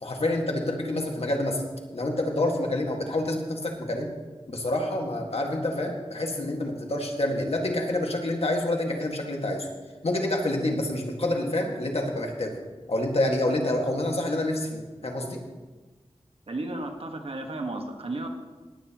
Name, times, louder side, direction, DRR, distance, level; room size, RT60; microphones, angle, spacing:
voice 1, 0.0-1.6 1.9-4.1 4.5-9.7 10.0-12.6 12.9-15.4, left 1 dB, 70° left, 1 dB, 1.8 m, -27 dB
voice 2, 16.5-18.3, right 2 dB, 65° right, 3 dB, 1.4 m, -33 dB
18.5 x 9.1 x 3.0 m, 1.3 s
wide cardioid pair, 60°, 11 cm